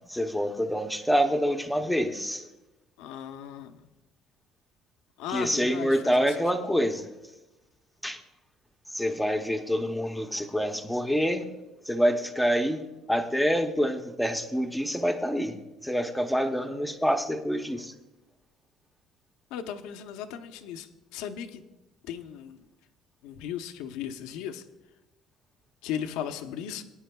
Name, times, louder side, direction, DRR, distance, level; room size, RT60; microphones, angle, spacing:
voice 1, 0.1-2.5 5.3-7.1 8.0-8.2 8.9-11.5 11.8-17.9, equal, ahead, 5 dB, 0.7 m, -27 dB
voice 2, 3.0-3.8 5.2-6.3 19.5-20.9 21.1-21.6 22.1-22.6 23.2-24.6 25.8-26.8, left 9 dB, 90° left, 8 dB, 0.7 m, -36 dB
20.5 x 9.8 x 2.3 m, 1.0 s
cardioid pair, 160°, 0 cm